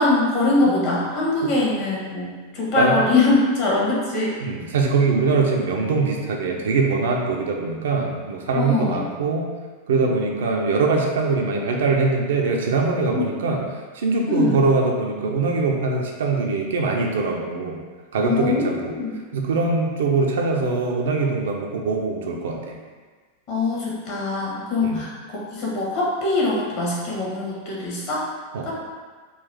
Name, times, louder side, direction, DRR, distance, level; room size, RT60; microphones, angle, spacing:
voice 1, 0.0-4.3 8.6-9.0 13.1-13.3 14.3-14.6 18.2-19.1 23.5-28.2 28.6-28.8, left 2 dB, 45° left, -5 dB, 1.2 m, -22 dB
voice 2, 4.4-9.5 9.9-13.6 13.9-17.8 18.1-18.9 19.3-22.8 24.8-25.0 28.5-28.8, right 3 dB, 60° right, 1 dB, 0.4 m, -22 dB
3.9 x 2.4 x 3.3 m, 1.4 s
figure-of-eight pair, 90°, 0 cm